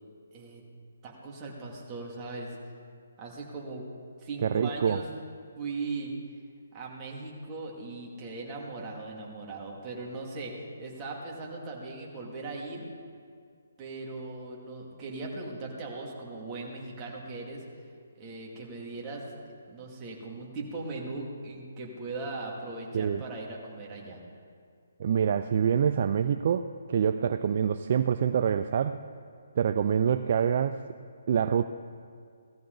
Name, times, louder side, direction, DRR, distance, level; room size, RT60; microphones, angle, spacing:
voice 1, 0.3-0.6 1.0-2.5 3.2-3.8 4.2-5.1 5.6-6.1 6.7-12.9 13.8-17.6 18.1-19.2 19.7-24.2, right 3 dB, 20° right, -3 dB, 2.4 m, -39 dB
voice 2, 4.4-5.0 22.9-23.2 25.0-29.0 29.6-30.8 31.3-31.6, right 8 dB, 45° right, 10 dB, 0.4 m, -26 dB
17.5 x 14.0 x 4.0 m, 2.1 s
hypercardioid pair, 160°, 0 cm